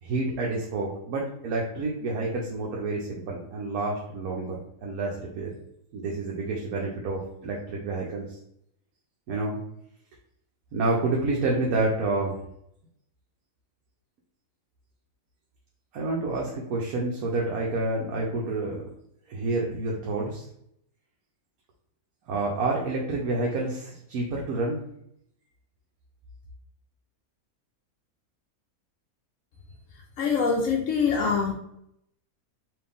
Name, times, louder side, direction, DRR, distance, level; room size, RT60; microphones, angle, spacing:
voice 1, 0.0-5.5 5.9-8.4 9.3-9.6 10.7-12.4 15.9-18.9 19.3-20.5 22.3-24.8, right 2 dB, 80° right, -2 dB, 1.2 m, -29 dB
voice 2, 30.2-31.5, left 5 dB, 65° left, -1 dB, 0.9 m, -24 dB
4.5 x 2.7 x 3.5 m, 0.75 s
omnidirectional pair, 1.5 m